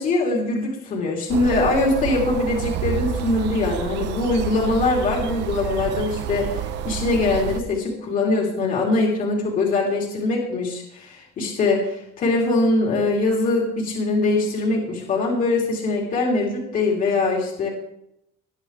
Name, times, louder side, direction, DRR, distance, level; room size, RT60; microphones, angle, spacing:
voice 1, 0.0-17.7, left 3 dB, 50° left, -1 dB, 3.6 m, -22 dB
sound 1, 1.3-7.6, right 9 dB, 80° right, 1.0 m, -29 dB
20.0 x 10.5 x 3.4 m, 0.76 s
cardioid pair, 160°, 18 cm